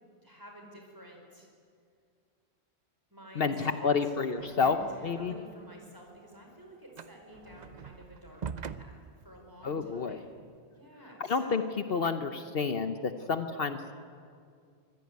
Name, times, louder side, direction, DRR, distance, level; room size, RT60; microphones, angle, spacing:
voice 1, 0.2-1.5 3.1-4.1 4.4-10.4 10.7-11.6 12.0-12.1, equal, 20° right, 1 dB, 4.9 m, -51 dB
voice 2, 3.4-4.8 5.0-5.3 9.6-10.2 11.2-11.6 11.9-13.9, left 5 dB, 60° left, 9 dB, 1.1 m, -29 dB
sound 1, 4.4-5.5 5.9-10.4, right 6 dB, 45° right, 0.7 m, -44 dB
25.0 x 16.5 x 9.4 m, 2.2 s
omnidirectional pair, 1.1 m